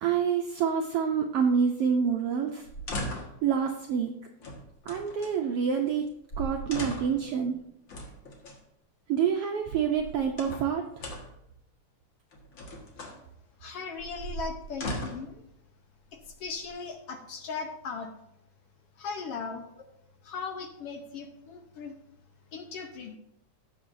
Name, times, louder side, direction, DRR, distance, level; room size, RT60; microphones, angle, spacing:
voice 1, 0.0-2.6 3.4-4.1 4.9-6.1 6.4-7.6 9.1-10.8, right 7 dB, 75° right, 2 dB, 1.4 m, -27 dB
sound 1, 2.6-3.4 4.4-5.3 6.0-6.1 6.3-7.3 7.9-8.6 9.7-10.7 11.0-11.4 12.3-13.2 14.0-15.3 16.2-16.9, equal, 45° left, 2.1 m, -38 dB
voice 2, 13.6-15.4 16.1-18.1 19.0-19.7 20.2-21.9 22.5-23.2, left 5 dB, 65° left, 5 dB, 1.6 m, -38 dB
17.0 x 7.1 x 2.7 m, 0.77 s
omnidirectional pair, 3.5 m